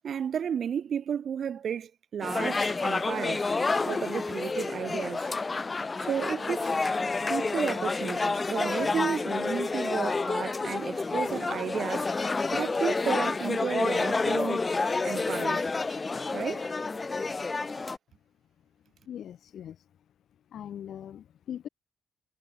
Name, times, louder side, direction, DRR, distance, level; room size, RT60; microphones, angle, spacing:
voice 1, 0.0-3.5 3.8-5.3 6.0-6.8 7.3-12.3 12.5-14.7 15.0-15.7 16.3-16.7, right 8 dB, 55° right, 0.4 m, -33 dB
sound 1, 2.2-18.0, left 3 dB, 25° left, 0.7 m, -29 dB
voice 2, 19.1-19.8 20.5-21.7, left 10 dB, 70° left, 0.7 m, -40 dB
cardioid pair, 140°, 0 cm